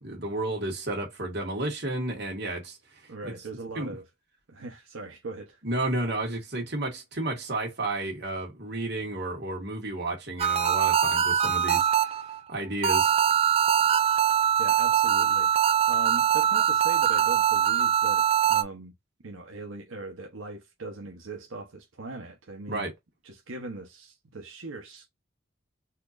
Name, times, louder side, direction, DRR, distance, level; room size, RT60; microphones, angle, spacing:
voice 1, 0.0-2.8 3.2-3.3 3.8-4.0 5.6-12.2 12.5-13.1 22.7-22.9, right 2 dB, 55° right, 1.8 m, -32 dB
voice 2, 3.1-4.0 4.5-5.6 14.6-15.5 15.9-18.9 19.2-22.9 23.2-25.1, right 3 dB, 90° right, 0.9 m, -40 dB
sound 1, 10.4-12.4 12.8-18.6, right 9 dB, 30° right, 0.4 m, -23 dB
4.2 x 2.9 x 2.5 m
head